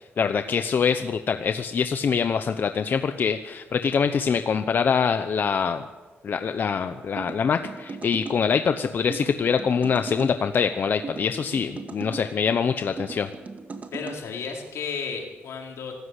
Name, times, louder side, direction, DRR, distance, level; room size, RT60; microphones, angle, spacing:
voice 1, 0.2-5.8 6.2-13.3, left 6 dB, 50° left, 8 dB, 1.0 m, -24 dB
sound 1, 7.2-8.4 9.1-10.3 11.0-12.3 13.0-14.2, right 4 dB, 35° right, 1.8 m, -38 dB
voice 2, 13.9-15.9, left 5 dB, 80° left, 1 dB, 4.4 m, -33 dB
25.5 x 13.5 x 8.4 m, 1.3 s
cardioid pair, 135°, 4 cm